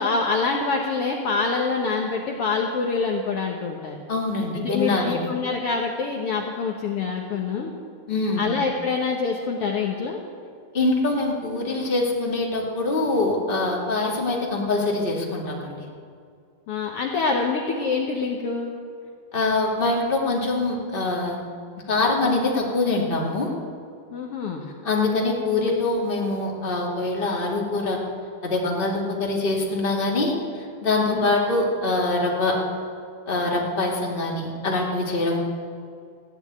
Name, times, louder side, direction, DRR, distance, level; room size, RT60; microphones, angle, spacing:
voice 1, 0.0-4.0 4.5-7.7 8.4-10.2 16.7-18.7 24.1-24.7 31.1-31.3, left 4 dB, 60° left, 1 dB, 1.8 m, -26 dB
voice 2, 4.1-5.2 8.1-8.5 10.7-15.8 19.3-21.4 21.9-23.5 24.8-28.0 28.4-30.3 30.8-32.6 33.3-35.4, left 2 dB, 20° left, -2 dB, 2.2 m, -24 dB
15.5 x 9.6 x 9.5 m, 2.2 s
omnidirectional pair, 3.4 m